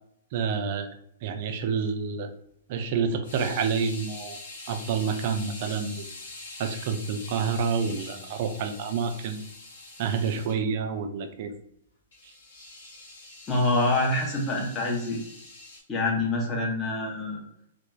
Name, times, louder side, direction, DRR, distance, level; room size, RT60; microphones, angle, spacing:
voice 1, 0.3-0.9 1.2-2.3 2.7-4.4 4.7-6.1 6.6-9.4 10.0-11.5, right 5 dB, 50° right, 6 dB, 0.3 m, -28 dB
sound 1, 3.2-10.6 12.1-15.8, left 2 dB, 65° left, 0.8 m, -44 dB
voice 2, 13.5-15.2 15.9-17.4, left 2 dB, 20° left, -2 dB, 0.7 m, -26 dB
3.1 x 2.0 x 2.2 m, 0.73 s
figure-of-eight pair, 110°, 0 cm